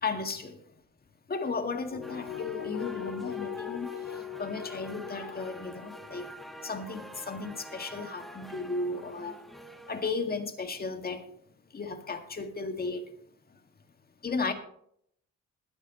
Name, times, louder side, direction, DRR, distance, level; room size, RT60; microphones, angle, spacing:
voice 1, 0.0-0.6 1.3-6.3 6.6-9.4 9.9-11.3 11.7-13.0 14.2-14.5, left 4 dB, 30° left, 1.9 m, -35 dB
sound 1, 1.9-7.8, left 9 dB, 70° left, 2.1 m, -40 dB
sound 2, 2.0-10.1, equal, ahead, 1.5 m, -47 dB
21.5 x 9.8 x 3.0 m
cardioid pair, 90°, 30 cm